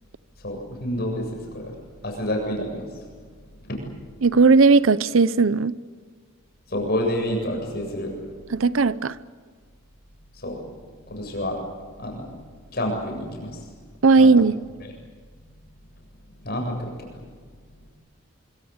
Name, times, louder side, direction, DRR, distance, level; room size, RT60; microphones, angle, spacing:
voice 1, 0.4-1.7 2.0-2.9 3.7-3.8 6.7-8.1 10.4-10.6 11.1-11.6 12.0-12.3 12.7-13.6 14.2-14.3 16.4-17.2, left 1 dB, 50° left, 2 dB, 7.7 m, -28 dB
voice 2, 4.2-5.7 8.5-9.1 14.0-14.6, right 4 dB, 70° right, 17 dB, 0.7 m, -16 dB
25.0 x 24.5 x 8.8 m, 1.5 s
head